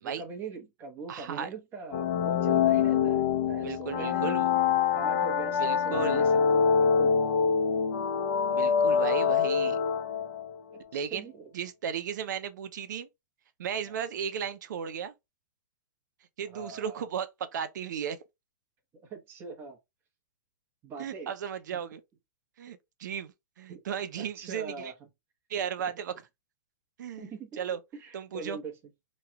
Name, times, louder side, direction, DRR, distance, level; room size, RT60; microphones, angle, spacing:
voice 1, 0.0-4.2 4.9-7.2 10.9-11.5 13.9-14.0 16.5-17.0 19.0-19.8 20.8-21.3 23.7-23.8 24.2-24.9 27.2-27.7 27.9-28.8, right 4 dB, 20° right, 0.9 m, -42 dB
voice 2, 1.1-1.5 3.6-4.5 5.6-6.2 8.5-9.8 10.9-11.2 11.5-13.1 13.6-15.1 16.4-18.2 21.0-22.0 22.6-24.9 25.5-26.3 27.0-27.8 28.1-28.6, right 8 dB, 70° right, 0.6 m, -35 dB
sound 1, 1.9-10.5, left 6 dB, 50° left, 0.6 m, -25 dB
3.1 x 2.3 x 2.8 m
hypercardioid pair, 155°, 10 cm